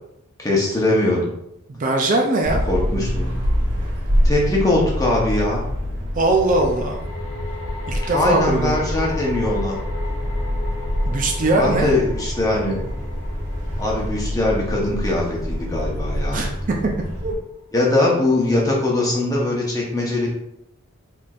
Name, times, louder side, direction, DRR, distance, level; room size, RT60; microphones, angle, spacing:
voice 1, 0.4-1.3 2.7-3.3 4.2-5.6 8.1-9.8 11.6-12.8 13.8-16.4 17.7-20.3, left 2 dB, 15° left, -3 dB, 0.9 m, -21 dB
voice 2, 1.7-2.6 6.2-7.1 7.9-8.7 11.1-11.9 16.3-16.5 17.2-17.3, right 2 dB, 40° right, 1 dB, 0.5 m, -20 dB
sound 1, 2.4-17.3, equal, 55° right, 1.4 m, -26 dB
sound 2, 3.4-3.5 6.4-17.8, left 3 dB, 60° left, 1.2 m, -38 dB
4.4 x 3.5 x 2.5 m, 0.81 s
head